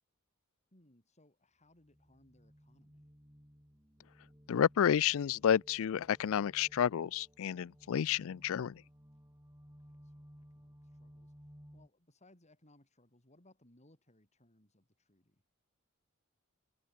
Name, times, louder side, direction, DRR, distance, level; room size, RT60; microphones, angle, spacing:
voice 1, 0.7-3.1 9.1-9.2 9.8-15.4, left 1 dB, 30° left, 6.2 m, -67 dB
sound 1, 1.8-11.9, equal, 15° right, 5.6 m, -59 dB
voice 2, 4.5-8.7, left 8 dB, 65° left, 0.4 m, -30 dB
head